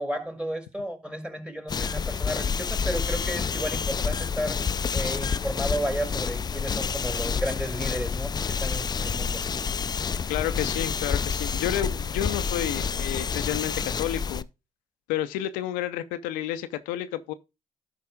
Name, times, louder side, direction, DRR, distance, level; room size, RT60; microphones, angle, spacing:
voice 1, 0.0-4.6 4.9-9.4, equal, 5° right, 1.9 m, -33 dB
sound 1, 1.7-14.4, left 6 dB, 30° left, 0.4 m, -28 dB
voice 2, 10.3-14.5 15.1-17.3, left 12 dB, 90° left, 0.5 m, -30 dB
12.0 x 4.7 x 3.6 m
supercardioid pair, 55°, 14 cm